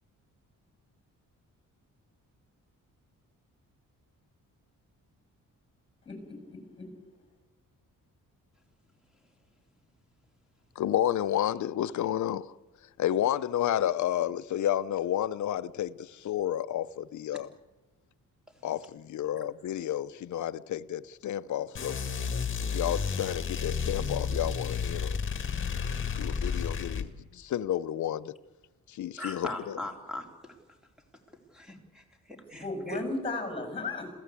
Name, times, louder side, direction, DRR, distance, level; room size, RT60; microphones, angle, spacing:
voice 1, 6.0-6.9 32.6-34.1, left 3 dB, 15° left, 6.2 m, -35 dB
voice 2, 10.8-12.5 13.0-17.5 18.6-22.0 22.6-25.2 26.2-28.4 28.9-29.8, left 11 dB, 60° left, 0.7 m, -31 dB
sound 1, 21.7-27.1, left 6 dB, 40° left, 1.9 m, -32 dB
voice 3, 29.2-30.6 31.5-33.0, left 1 dB, ahead, 3.5 m, -40 dB
27.0 x 15.5 x 8.4 m
wide cardioid pair, 155°, 32 cm